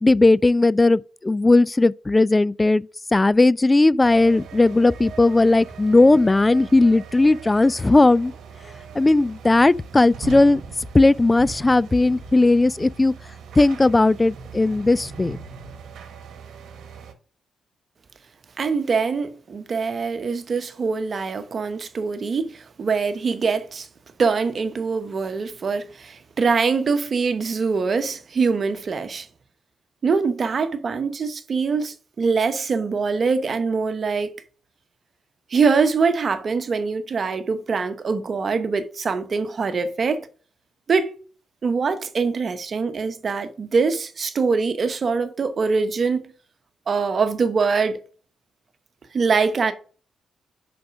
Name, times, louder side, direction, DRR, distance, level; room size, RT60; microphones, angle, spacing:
voice 1, 0.0-2.9 3.1-8.3 9.0-10.6 10.9-13.2 13.6-15.4, left 2 dB, 25° left, 0.3 m, -17 dB
sound 1, 4.0-17.1, right 6 dB, 75° right, 1.2 m, -40 dB
voice 2, 18.6-23.9 24.2-29.3 30.0-34.4 35.5-40.3 40.9-41.1 41.6-46.3 46.9-48.0 49.1-49.7, right 4 dB, 50° right, 1.0 m, -23 dB
5.3 x 5.1 x 5.9 m
supercardioid pair, 50°, 0 cm